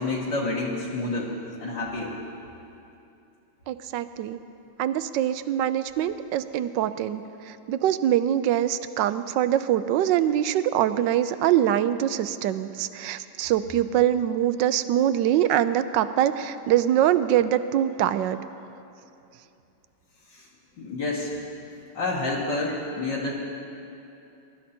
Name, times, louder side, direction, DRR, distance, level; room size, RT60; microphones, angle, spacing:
voice 1, 0.0-1.4 1.6-2.2 20.3-20.5 20.8-21.3 21.9-23.3, left 2 dB, 65° left, -5 dB, 2.3 m, -29 dB
voice 2, 3.7-4.4 4.8-7.2 7.7-18.4, right 11 dB, 75° right, 13 dB, 1.2 m, -23 dB
22.0 x 12.0 x 4.3 m, 2.7 s
omnidirectional pair, 2.2 m